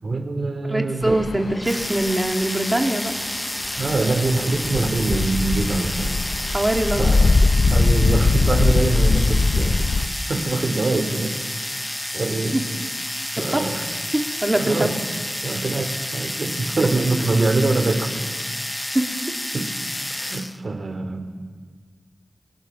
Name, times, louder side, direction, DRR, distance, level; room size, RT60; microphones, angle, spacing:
voice 1, 0.0-1.3 3.8-6.2 7.0-7.4 7.7-9.9 10.3-11.4 12.1-12.6 13.3-13.8 14.5-15.0 15.4-18.4 19.5-19.7 20.1-21.3, right 3 dB, 60° right, 7 dB, 3.4 m, -24 dB
voice 2, 0.7-3.1 6.5-7.3 12.5-12.6 13.4-13.8 14.1-14.9 18.9-19.1, right 1 dB, 20° right, 3 dB, 3.2 m, -23 dB
sound 1, 1.0-10.1, left 3 dB, 65° left, 1.1 m, -21 dB
sound 2, 1.6-20.6, left 1 dB, 15° left, 0.9 m, -30 dB
29.5 x 23.0 x 7.5 m, 1.5 s
cardioid pair, 60°, 0 cm